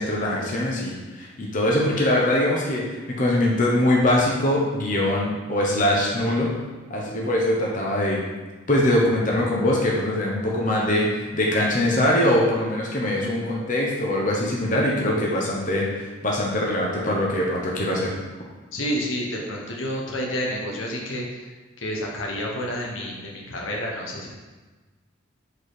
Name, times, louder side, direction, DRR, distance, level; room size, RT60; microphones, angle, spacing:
voice 1, 0.0-6.5 6.9-8.2 8.7-18.1, left 1 dB, 40° left, -3 dB, 0.9 m, -22 dB
voice 2, 18.7-21.4 21.8-24.3, equal, 85° left, -1 dB, 1.2 m, -29 dB
4.8 x 4.1 x 4.9 m, 1.3 s
head